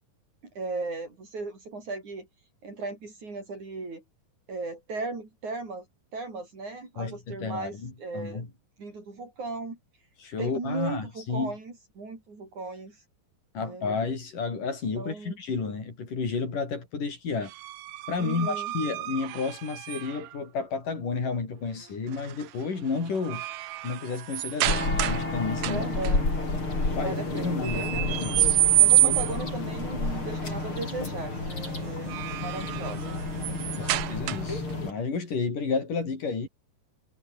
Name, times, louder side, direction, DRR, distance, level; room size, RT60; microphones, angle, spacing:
voice 1, 0.6-2.3 2.6-4.0 4.5-5.8 6.1-8.5 8.8-9.8 10.4-13.0 13.6-13.9 15.0-15.4 18.2-18.7 25.7-26.3 27.0-28.2 28.8-34.0, right 3 dB, 55° right, 7.8 m, -37 dB
voice 2, 7.0-8.5 10.2-11.5 13.5-17.5 18.1-23.4 23.8-25.9 27.0-28.5 29.0-29.1 33.8-36.5, left 4 dB, 65° left, 7.3 m, -31 dB
sound 1, 17.4-20.3 22.1-22.5 22.9-25.3 25.6-26.1 27.6-29.5 31.8-34.7, right 16 dB, 75° right, 2.5 m, -27 dB
sound 2, 24.6-34.9, left 2 dB, 35° left, 7.8 m, -30 dB
omnidirectional pair, 4.0 m